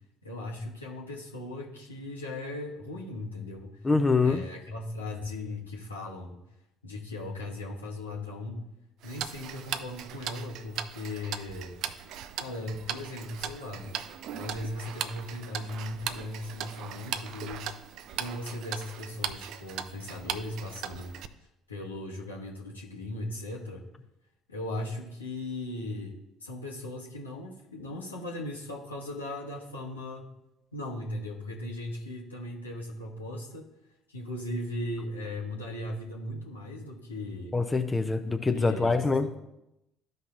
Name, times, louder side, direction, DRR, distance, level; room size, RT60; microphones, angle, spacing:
voice 1, 0.2-3.9 4.2-6.4 6.8-8.6 9.0-11.7 12.4-13.9 14.3-17.7 18.2-21.2 21.7-23.8 24.5-26.1 26.4-30.3 30.7-33.7 34.1-37.5 38.2-39.3, left 1 dB, 80° left, -2 dB, 1.2 m, -38 dB
voice 2, 3.8-4.4 37.5-39.3, left 3 dB, 20° left, 6 dB, 0.6 m, -25 dB
Tick-tock, 9.0-21.3, right 9 dB, 55° right, 0.4 m, -38 dB
13.5 x 5.4 x 2.5 m, 0.88 s
figure-of-eight pair, 55°, 0 cm